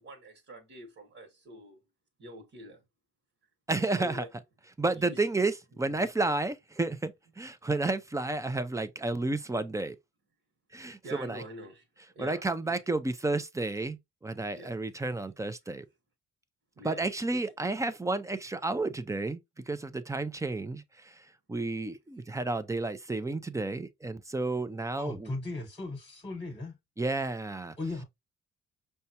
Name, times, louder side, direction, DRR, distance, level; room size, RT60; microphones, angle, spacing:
voice 1, 0.0-1.8 2.2-2.8 3.8-4.3 4.9-5.2 5.9-6.1 11.0-11.8 12.1-12.8 14.5-14.7 16.8-17.0 22.2-22.3, right 1 dB, 50° right, 1.2 m, -46 dB
voice 2, 3.7-4.2 4.8-10.0 10.7-11.4 12.2-15.9 16.8-25.3 27.0-27.8, right 2 dB, 10° right, 0.4 m, -31 dB
voice 3, 25.0-26.7 27.8-28.0, left 2 dB, 15° left, 1.1 m, -37 dB
5.4 x 2.3 x 2.8 m
cardioid pair, 90°, 30 cm